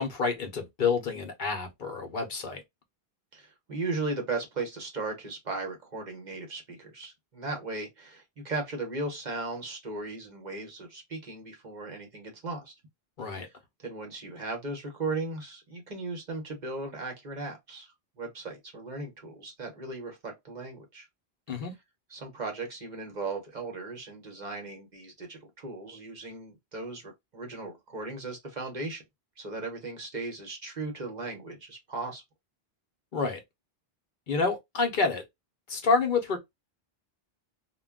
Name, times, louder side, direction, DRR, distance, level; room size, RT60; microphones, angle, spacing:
voice 1, 0.0-2.6 13.2-13.5 21.5-21.7 33.1-33.4 34.3-35.2 35.7-36.4, left 4 dB, 55° left, 0.8 m, -28 dB
voice 2, 3.3-12.7 13.3-13.5 13.8-21.1 22.1-29.0 29.4-32.2, right 3 dB, 50° right, 1.0 m, -37 dB
2.2 x 2.1 x 3.5 m
omnidirectional pair, 1.0 m